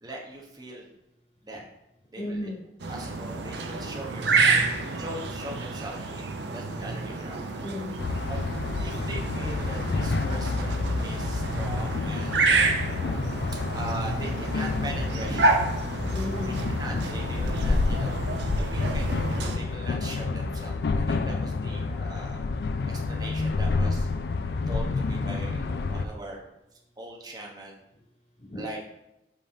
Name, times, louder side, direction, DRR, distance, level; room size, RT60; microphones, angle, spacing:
voice 1, 0.0-0.9 1.4-1.6 2.1-2.4 2.9-4.5 5.0-7.4 8.3-8.4 8.7-12.7 13.7-15.6 16.8-18.2 18.5-22.4 22.8-24.1 24.7-26.5 27.0-27.8 28.5-28.8, right 1 dB, 20° right, -2 dB, 1.0 m, -40 dB
voice 2, 2.2-2.6 7.6-8.1 16.1-16.6 21.4-21.8 28.4-28.7, left 2 dB, 35° left, 1 dB, 0.8 m, -35 dB
sound 1, 2.8-19.6, right 3 dB, 75° right, 0.6 m, -29 dB
sound 2, 8.0-26.1, left 3 dB, 65° left, 0.4 m, -29 dB
5.4 x 3.4 x 5.5 m, 0.88 s
head